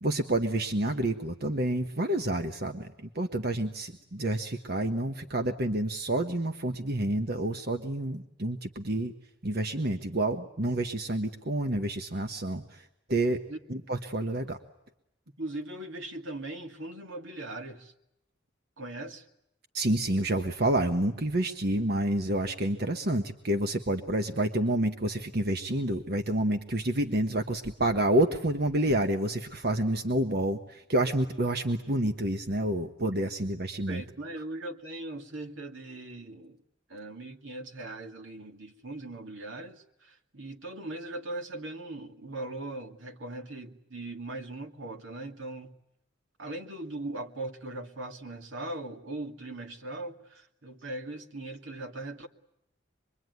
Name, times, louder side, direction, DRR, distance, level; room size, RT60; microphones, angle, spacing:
voice 1, 0.0-9.1 9.4-13.4 13.7-14.6 19.7-34.0, right 1 dB, 55° right, 6 dB, 1.3 m, -29 dB
voice 2, 15.4-17.9 18.8-19.3 33.9-36.6 36.9-45.7 46.4-52.3, right 2 dB, 80° right, 4 dB, 2.3 m, -39 dB
25.5 x 22.5 x 9.5 m, 0.83 s
head